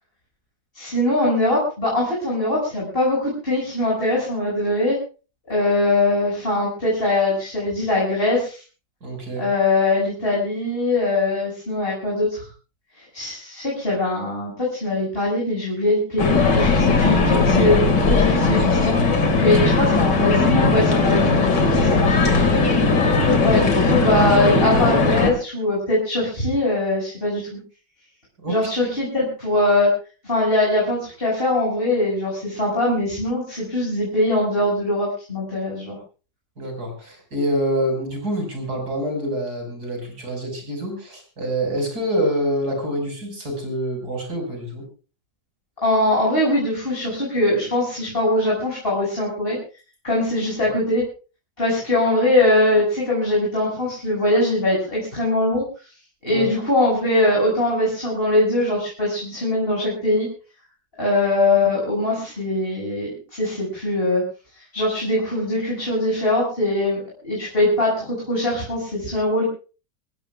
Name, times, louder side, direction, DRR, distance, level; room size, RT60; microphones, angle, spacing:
voice 1, 0.7-5.0 5.5-8.6 9.4-12.4 13.1-17.8 18.1-22.0 23.4-27.4 28.5-29.9 30.2-36.0 45.8-49.6 50.0-51.0 51.6-55.6 56.2-60.3 61.0-64.2 64.7-69.4, left 1 dB, 30° left, -5 dB, 6.9 m, -22 dB
voice 2, 9.0-9.5 22.4-22.6 23.3-23.6 28.4-28.6 36.6-44.9 56.3-56.5, equal, 55° right, 3 dB, 6.3 m, -26 dB
sound 1, 16.2-25.3, left 3 dB, 70° left, 2.9 m, -18 dB
27.0 x 16.0 x 2.4 m, 0.35 s
omnidirectional pair, 1.9 m